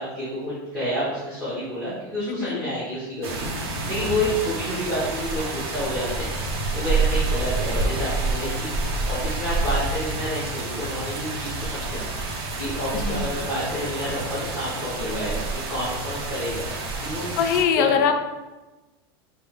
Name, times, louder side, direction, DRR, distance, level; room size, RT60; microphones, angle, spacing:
voice 1, 0.0-3.5 3.9-6.3 6.7-8.7 9.0-12.0 12.6-16.7 17.0-17.3 17.7-18.0, equal, 5° right, -12 dB, 1.1 m, -29 dB
voice 2, 2.3-2.6 12.9-13.2 17.4-18.2, left 7 dB, 50° left, 7 dB, 0.4 m, -22 dB
sound 1, 3.2-17.6, right 3 dB, 90° right, 0.8 m, -28 dB
5.1 x 2.1 x 3.5 m, 1.1 s
supercardioid pair, 175°, 13 cm